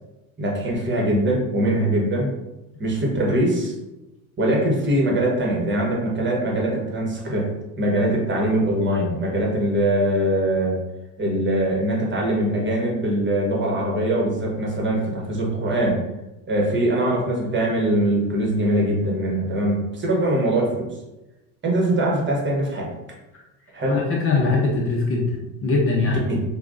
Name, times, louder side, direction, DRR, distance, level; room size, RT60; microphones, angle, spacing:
voice 1, 0.4-2.3 2.8-3.7 4.4-7.5 7.8-10.8 11.2-16.0 16.5-20.9 21.6-22.9 23.7-24.0 26.1-26.4, right 1 dB, 25° right, -2 dB, 1.3 m, -22 dB
voice 2, 23.9-26.2, left 3 dB, 30° left, -2 dB, 0.8 m, -22 dB
5.8 x 2.4 x 2.6 m, 0.99 s
hypercardioid pair, 80°, 44 cm